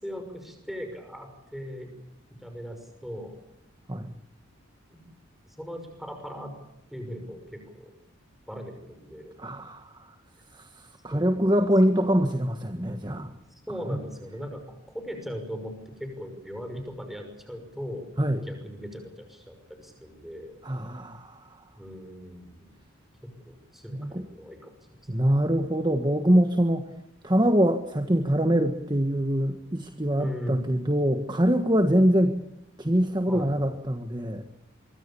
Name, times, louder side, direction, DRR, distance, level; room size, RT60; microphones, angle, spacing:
voice 1, 0.0-1.9 2.4-3.3 4.9-5.0 5.5-6.6 6.9-7.9 8.5-9.4 11.1-11.5 12.0-12.1 13.5-18.1 18.5-20.5 21.8-22.8 23.2-24.8 30.1-30.7 33.3-33.8, equal, ahead, 5 dB, 5.9 m, -39 dB
voice 2, 9.4-10.1 10.5-13.3 13.9-14.0 18.2-18.5 20.6-21.5 23.9-24.3 25.1-26.8 27.2-32.4 32.8-34.4, equal, 20° right, 6 dB, 1.5 m, -24 dB
24.5 x 24.0 x 7.1 m, 0.79 s
head